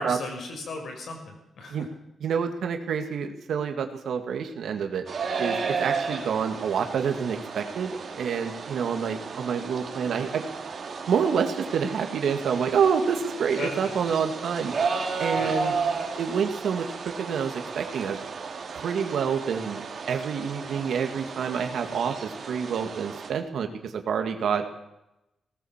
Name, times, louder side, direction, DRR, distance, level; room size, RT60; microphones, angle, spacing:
voice 1, 0.0-1.9 13.5-13.9 15.3-15.5, left 2 dB, 60° left, 4 dB, 6.0 m, -36 dB
voice 2, 2.2-5.0 5.4-10.4 11.1-14.7 15.2-15.7 16.2-18.2 18.7-24.6, right 7 dB, 70° right, 6 dB, 2.2 m, -28 dB
sound 1, 5.1-23.3, right 5 dB, 45° right, 3.0 m, -33 dB
19.0 x 18.5 x 7.4 m, 0.89 s
wide cardioid pair, 155°, 0 cm